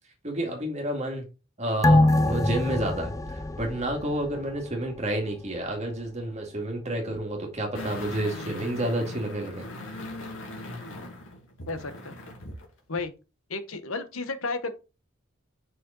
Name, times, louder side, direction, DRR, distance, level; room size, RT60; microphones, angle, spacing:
voice 1, 0.2-1.2 1.6-9.6 9.9-10.0, right 1 dB, 35° right, 2.1 m, -30 dB
sound 1, 1.8-4.7 5.1-5.2, left 1 dB, 15° left, 0.5 m, -24 dB
sound 2, 7.7-12.6 13.0-13.1, left 1 dB, 70° left, 2.2 m, -39 dB
voice 2, 11.7-12.1 12.9-13.1 13.5-14.7, left 3 dB, 90° left, 1.1 m, -32 dB
5.8 x 4.9 x 3.9 m
head